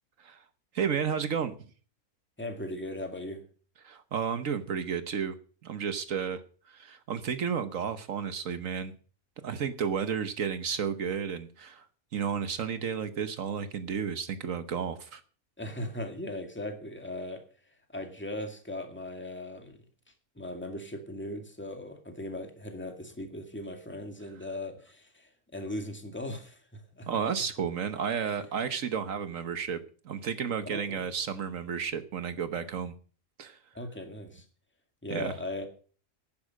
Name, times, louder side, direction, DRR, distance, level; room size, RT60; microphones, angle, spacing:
voice 1, 0.7-1.5 3.8-5.3 5.6-6.4 6.7-8.9 9.4-11.8 12.1-15.2 27.1-29.8 30.0-32.9 33.4-33.6 35.1-35.3, right 7 dB, 70° right, 10 dB, 1.4 m, -32 dB
voice 2, 2.4-3.4 15.6-17.4 17.9-19.8 20.4-27.1 28.4-28.5 30.6-31.0 33.7-34.4 35.0-35.6, left 1 dB, 10° left, 5 dB, 2.0 m, -38 dB
11.0 x 9.8 x 6.4 m, 0.41 s
omnidirectional pair, 1.5 m